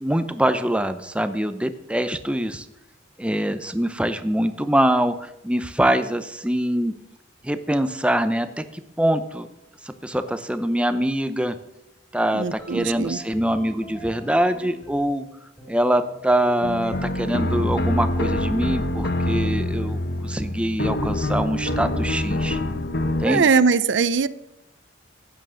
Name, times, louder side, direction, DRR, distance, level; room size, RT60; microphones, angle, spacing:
voice 1, 0.0-2.7 3.2-6.9 7.4-8.6 9.0-9.5 9.8-11.6 12.1-15.3 15.7-22.6 23.2-23.5, right 1 dB, 5° right, 10 dB, 0.7 m, -24 dB
voice 2, 12.3-13.2 23.2-24.3, right 5 dB, 70° right, 16 dB, 0.6 m, -20 dB
sound 1, 12.6-15.2 15.6-17.4, right 1 dB, 10° left, 3.6 m, -42 dB
sound 2, 16.6-23.2, left 1 dB, 55° left, 0.9 m, -25 dB
14.5 x 9.1 x 6.3 m, 0.87 s
head